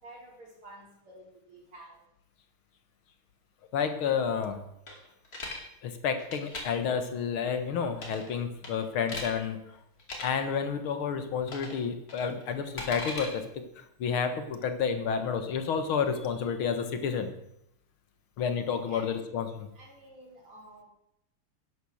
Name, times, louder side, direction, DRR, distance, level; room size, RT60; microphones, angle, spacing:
voice 1, 0.0-2.0 18.9-19.2 19.8-20.8, right 1 dB, 80° right, -3 dB, 5.7 m, -50 dB
voice 2, 3.7-4.6 5.8-9.6 10.2-13.5 14.0-17.3 18.4-19.7, left 6 dB, 75° left, 8 dB, 2.2 m, -30 dB
sound 1, 4.9-5.6 6.2-6.6 7.9-8.3 8.6-9.3 10.0-10.3 11.5-11.8 12.1-13.3, left 2 dB, 45° left, 2.9 m, -38 dB
11.5 x 10.5 x 6.4 m, 0.78 s
omnidirectional pair, 2.4 m